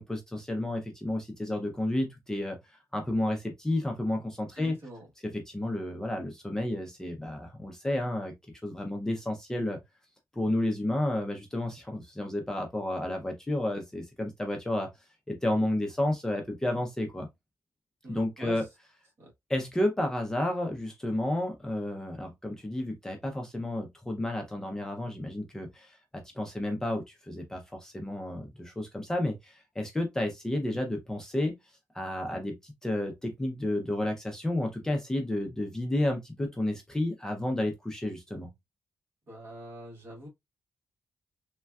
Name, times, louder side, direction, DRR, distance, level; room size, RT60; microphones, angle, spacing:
voice 1, 0.0-4.8 5.3-8.4 8.6-9.8 10.3-14.9 15.3-17.3 18.1-18.6 19.5-31.6 31.9-38.5, left 1 dB, 10° left, 0.4 m, -31 dB
voice 2, 4.6-5.1 18.0-18.7 19.2-19.3 39.3-40.3, right 1 dB, 45° right, 1.1 m, -44 dB
3.4 x 2.2 x 2.2 m
wide cardioid pair, 180°, 6 cm